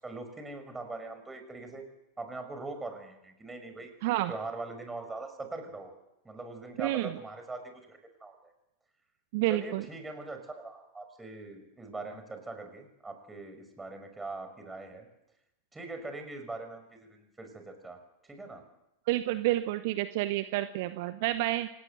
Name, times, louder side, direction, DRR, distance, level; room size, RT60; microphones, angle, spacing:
voice 1, 0.0-1.9 2.2-3.9 4.3-5.9 6.2-8.5 9.5-15.1 15.7-18.6 21.2-21.3, right 3 dB, 10° right, 6 dB, 5.7 m, -42 dB
voice 2, 4.0-4.3 6.8-7.1 9.3-9.8 19.1-21.7, right 16 dB, 50° right, 12 dB, 0.9 m, -29 dB
27.0 x 18.5 x 7.9 m, 0.89 s
figure-of-eight pair, 90°, 0 cm